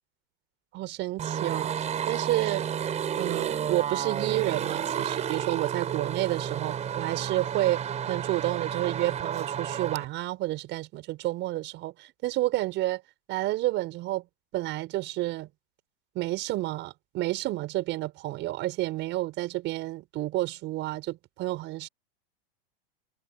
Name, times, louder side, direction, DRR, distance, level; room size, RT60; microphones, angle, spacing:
voice 1, 0.7-1.7 2.1-2.6 3.2-13.0 13.3-14.3 14.5-15.5 16.2-21.9, right 17 dB, 40° right, 5.3 m, -30 dB
sound 1, 1.2-10.0, right 8 dB, 20° right, 4.7 m, -31 dB
supercardioid pair, 135°, 30 cm